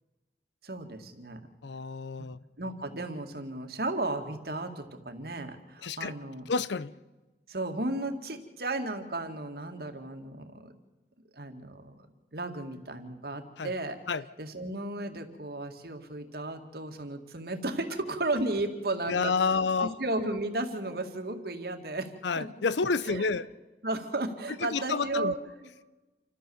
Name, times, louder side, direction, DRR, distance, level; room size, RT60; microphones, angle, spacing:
voice 1, 0.6-1.4 2.6-6.4 7.5-10.7 11.4-12.1 12.3-14.0 14.4-22.1 22.4-22.5 23.0-23.4 23.8-25.9, right 2 dB, 60° right, 2.1 m, -34 dB
voice 2, 1.6-2.4 5.8-6.1 6.5-6.9 13.6-13.7 14.1-14.2 19.1-19.9 22.2-23.5 24.6-25.3, left 4 dB, 85° left, 0.6 m, -29 dB
28.0 x 14.0 x 7.1 m
head